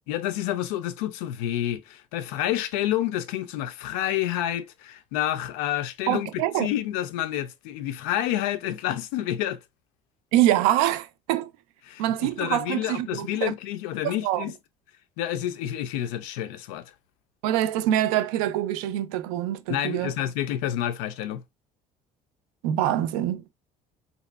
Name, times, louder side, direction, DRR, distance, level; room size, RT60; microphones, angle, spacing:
voice 1, 0.1-9.6 11.9-14.5 15.2-16.9 19.7-21.4, left 12 dB, 60° left, 0.4 m, -29 dB
voice 2, 6.1-6.7 10.3-11.5 12.0-13.5 14.0-14.4 17.4-20.1 22.6-23.4, right 13 dB, 60° right, 0.4 m, -25 dB
3.9 x 2.4 x 2.2 m
figure-of-eight pair, 55°, 21 cm